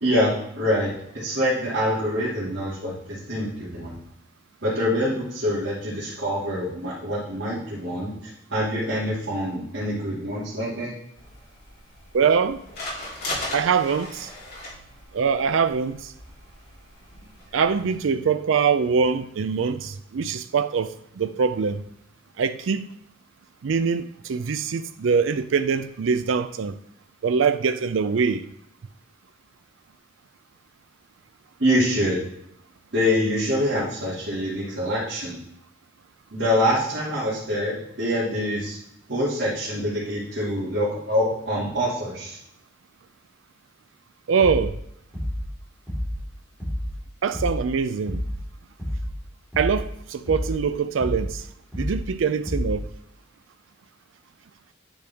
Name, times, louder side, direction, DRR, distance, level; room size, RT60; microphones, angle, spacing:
voice 1, 0.0-4.0 4.6-10.9 13.9-14.0 31.6-32.2 32.9-35.4 36.3-38.8 39.1-42.4, equal, 60° right, 2.3 m, -25 dB
sound 1, 11.2-18.0, left 1 dB, 55° left, 3.3 m, -38 dB
voice 2, 12.1-12.6 13.5-14.3 15.1-16.1 17.5-21.8 22.4-22.9 23.6-26.8 27.2-28.5 44.3-44.8 47.2-48.2 49.6-51.5 51.8-52.9, right 6 dB, 90° right, 0.4 m, -23 dB
sound 2, 44.4-44.8 45.1-45.5 45.9-46.2 46.6-47.0 47.3-47.7 48.1-48.4 48.8-49.2 49.5-49.9 50.3-50.6 51.0-51.4 51.7-52.1 52.5-52.9, equal, 5° right, 3.1 m, -29 dB
9.4 x 5.1 x 3.5 m
head